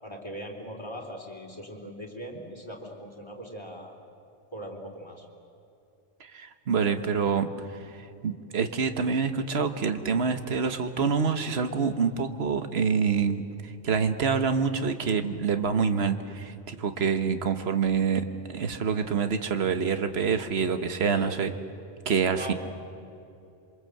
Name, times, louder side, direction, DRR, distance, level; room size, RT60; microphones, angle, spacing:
voice 1, 0.0-3.9 4.5-5.3 21.1-21.4 22.4-22.5, equal, 25° left, 0 dB, 3.7 m, -40 dB
voice 2, 6.2-7.5 8.2-21.5 22.0-22.5, right 6 dB, 65° right, 8 dB, 1.5 m, -26 dB
27.0 x 24.5 x 7.8 m, 2.6 s
omnidirectional pair, 1.2 m